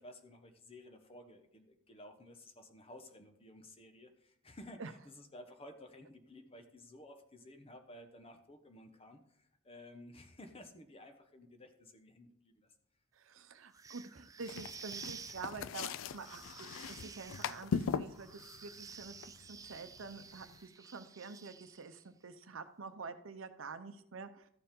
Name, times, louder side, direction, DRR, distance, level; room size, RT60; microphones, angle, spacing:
voice 1, 0.0-12.7, left 1 dB, 30° left, 6 dB, 1.0 m, -54 dB
voice 2, 13.1-24.5, right 4 dB, 75° right, 10 dB, 0.7 m, -48 dB
sound 1, 13.7-22.0, right 6 dB, 15° right, 0.3 m, -52 dB
sound 2, 14.4-20.6, left 6 dB, 80° left, 0.4 m, -41 dB
13.0 x 7.0 x 3.7 m, 0.75 s
head